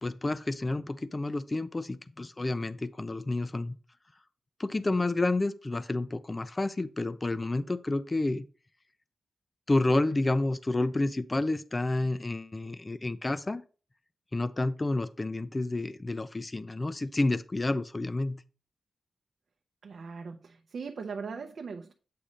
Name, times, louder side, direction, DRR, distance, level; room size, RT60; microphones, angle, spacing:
voice 1, 0.0-3.8 4.6-8.5 9.7-13.6 14.3-18.4, left 2 dB, 20° left, 0.4 m, -30 dB
voice 2, 19.8-21.9, right 5 dB, 55° right, 0.6 m, -39 dB
8.5 x 3.2 x 5.0 m
wide cardioid pair, 165°, 0 cm